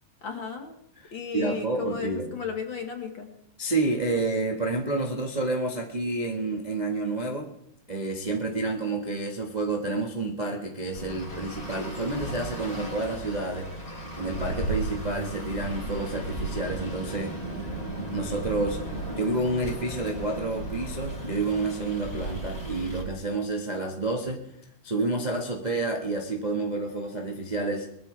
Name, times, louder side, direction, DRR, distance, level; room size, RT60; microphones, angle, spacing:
voice 1, 0.2-0.8 1.1-3.3, left 6 dB, 45° left, 3 dB, 2.0 m, -34 dB
voice 2, 1.0-2.3 3.6-7.5 7.9-13.7 14.2-17.3 18.1-18.8 19.1-24.4 24.8-27.9, right 2 dB, 25° right, 1 dB, 0.9 m, -29 dB
Traffic noise roadway noise, 10.9-23.0, right 1 dB, 10° left, 3.8 m, -35 dB
22.0 x 13.5 x 3.4 m, 0.74 s
omnidirectional pair, 3.7 m